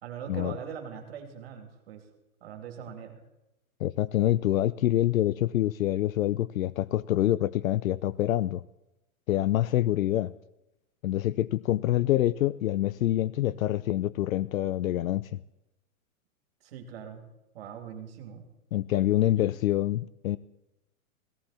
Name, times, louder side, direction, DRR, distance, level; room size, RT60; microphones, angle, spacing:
voice 1, 0.0-2.0 2.4-3.2 16.6-17.2 17.5-18.4 19.4-19.5, right 8 dB, 45° right, 3 dB, 3.2 m, -41 dB
voice 2, 3.8-8.6 9.3-10.3 11.0-15.3 18.7-20.4, left 13 dB, 75° left, 18 dB, 0.6 m, -26 dB
17.5 x 14.5 x 4.3 m, 0.91 s
hypercardioid pair, 175°, 41 cm